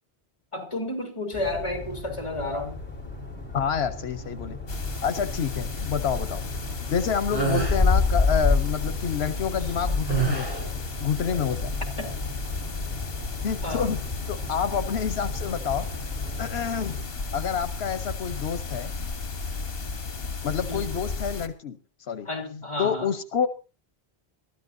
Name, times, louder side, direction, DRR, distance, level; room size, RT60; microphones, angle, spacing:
voice 1, 0.5-2.8 11.3-11.4 12.0-12.1 13.6-14.0 20.7-21.0 22.3-23.1, left 2 dB, 30° left, 3.4 m, -32 dB
sound 1, 1.3-17.0, left 3 dB, 10° left, 4.5 m, -31 dB
voice 2, 3.5-4.6 5.0-6.4 6.9-10.5 11.0-11.8 13.4-14.0 14.3-15.9 16.4-17.0 17.3-18.9 20.4-21.8 22.1-22.3 22.8-23.5, left 7 dB, 85° left, 1.1 m, -28 dB
sound 2, 4.7-21.5, left 4 dB, 70° left, 1.6 m, -33 dB
sound 3, 7.3-7.8 10.1-10.8, right 5 dB, 20° right, 7.4 m, -26 dB
22.5 x 13.5 x 2.6 m
omnidirectional pair, 1.0 m